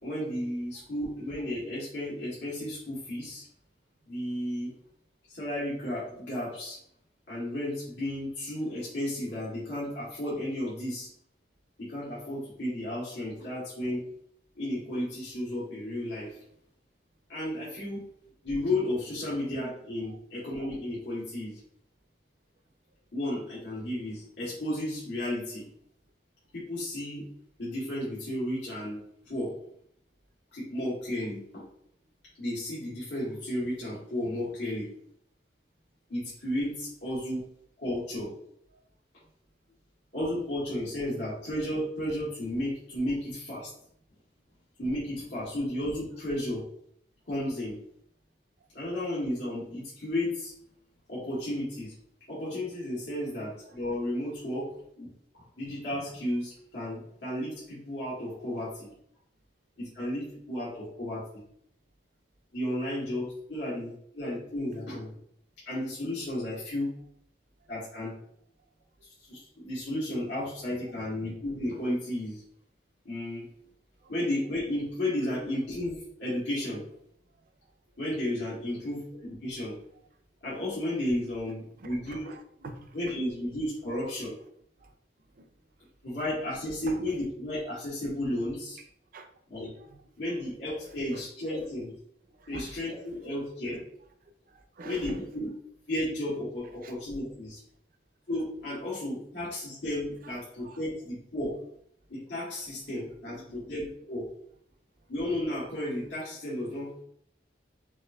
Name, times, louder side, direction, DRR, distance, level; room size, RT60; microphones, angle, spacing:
voice 1, 0.0-3.4 4.1-4.7 5.3-6.8 7.3-11.1 11.8-14.0 14.5-16.4 17.3-18.0 18.4-21.5 23.1-25.6 26.5-27.2 27.6-29.5 30.5-31.6 32.4-34.9 36.1-37.4 37.8-38.3 40.1-43.7 44.8-46.6 47.3-47.8 48.7-50.5 51.1-51.9 52.3-54.7 55.0-55.1 55.3-58.9 59.8-61.4 62.5-65.1 65.6-67.0 67.7-68.1 69.3-72.4 73.0-73.5 74.1-76.8 78.0-79.8 80.4-82.2 82.9-84.4 86.0-88.8 89.5-89.7 90.2-91.9 92.5-93.8 94.8-95.4 95.9-97.6 98.3-101.6 102.1-104.3 105.1-107.0, left 1 dB, 80° left, -8 dB, 1.6 m, -33 dB
voice 2, 81.8-83.1 84.8-84.9 85.3-85.5 86.9-87.0 89.1-89.3 89.8-90.3 90.8-91.3 92.4-92.8 93.3-93.8 94.5-95.3 96.8-96.9 100.2-100.8 103.1-103.6, right 2 dB, 50° right, 6 dB, 0.5 m, -47 dB
6.0 x 2.6 x 2.3 m, 0.68 s
head